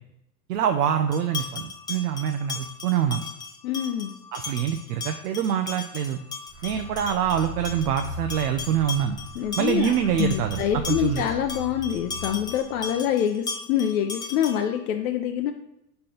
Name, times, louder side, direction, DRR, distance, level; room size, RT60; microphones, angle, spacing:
voice 1, 0.5-3.2 4.3-6.2 6.6-9.2 9.6-11.2, right 9 dB, 70° right, 6 dB, 0.7 m, -25 dB
sound 1, 1.1-14.8, left 4 dB, 10° left, 0.5 m, -37 dB
voice 2, 3.6-4.1 9.3-15.5, left 10 dB, 60° left, 4 dB, 0.7 m, -26 dB
sound 2, 6.5-13.0, left 1 dB, 5° right, 1.0 m, -40 dB
4.5 x 4.1 x 5.1 m, 0.85 s
hypercardioid pair, 95°, 49 cm